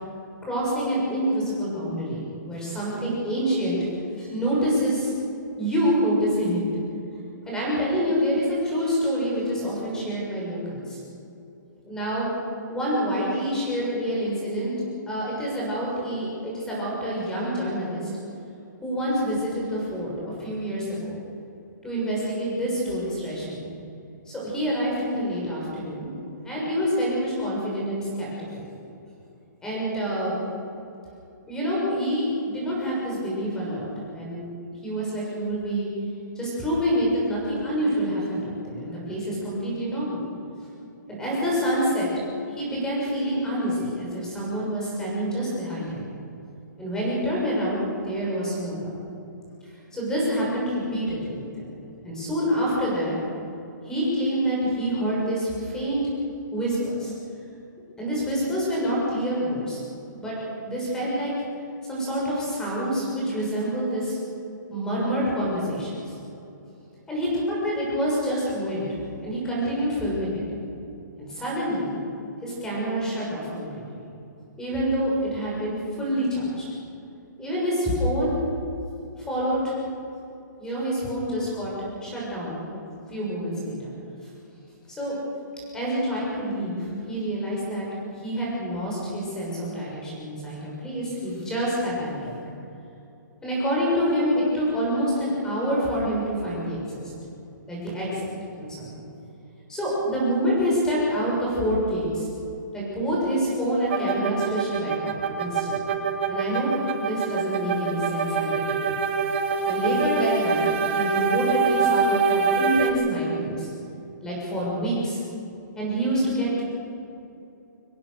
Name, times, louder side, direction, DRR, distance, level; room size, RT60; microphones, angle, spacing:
voice 1, 0.4-3.8 4.2-5.1 5.6-6.7 7.4-11.0 11.8-12.2 12.7-14.7 15.1-18.0 18.8-21.2 21.8-23.7 24.3-26.1 26.4-28.7 29.6-30.3 31.5-34.5 34.8-35.9 36.3-40.2 41.1-42.1 42.6-46.1 46.8-48.9 49.9-51.5 52.0-53.1 53.8-56.0 56.5-57.1 58.0-59.8 60.2-60.3 60.6-61.3 61.9-64.2 64.7-66.2 67.1-68.9 69.2-70.4 71.2-72.0 72.4-74.0 74.6-76.6 77.4-78.3 79.3-79.7 80.6-81.7 82.0-82.8 83.1-83.9 85.0-85.2 85.7-87.9 88.2-92.4 93.4-97.0 97.7-98.3 98.6-99.0 99.7-102.3 102.7-106.0 106.3-106.7 107.1-109.0 109.7-110.7 110.9-113.7 114.2-115.2 115.7-116.6, equal, 5° left, -5 dB, 6.5 m, -27 dB
sound 1, 103.9-112.9, right 5 dB, 35° right, 1.9 m, -24 dB
25.5 x 18.0 x 6.6 m, 2.8 s
hypercardioid pair, 165°, 10 cm